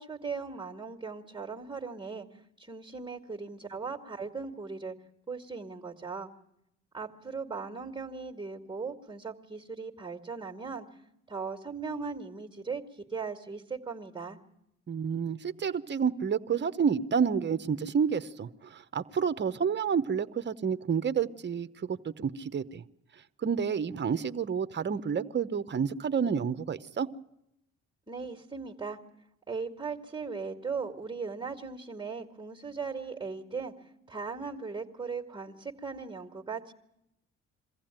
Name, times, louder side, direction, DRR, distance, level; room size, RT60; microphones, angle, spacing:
voice 1, 0.0-4.9 5.3-6.3 6.9-10.9 11.3-14.4 28.1-29.0 29.5-36.7, right 5 dB, 15° right, 3 dB, 1.9 m, -38 dB
voice 2, 14.9-22.8 23.4-27.1, right 6 dB, 35° right, 12 dB, 0.9 m, -29 dB
23.5 x 15.0 x 8.9 m, 0.85 s
cardioid pair, 90°, 30 cm